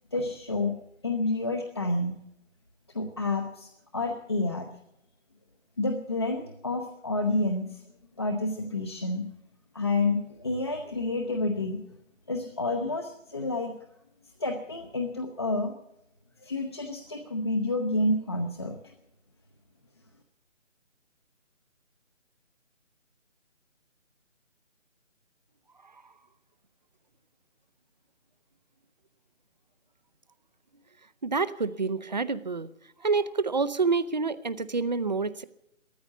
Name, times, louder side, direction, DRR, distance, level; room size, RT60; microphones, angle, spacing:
voice 1, 0.1-0.8 1.0-2.1 2.9-4.7 5.8-7.8 8.2-9.3 9.7-11.8 12.3-13.7 14.4-15.7 16.4-18.8, left 2 dB, 20° left, 4 dB, 0.7 m, -29 dB
voice 2, 31.2-32.7 33.0-35.4, right 4 dB, 35° right, 15 dB, 0.6 m, -27 dB
15.0 x 14.0 x 7.1 m, 0.81 s
figure-of-eight pair, 155°, 38 cm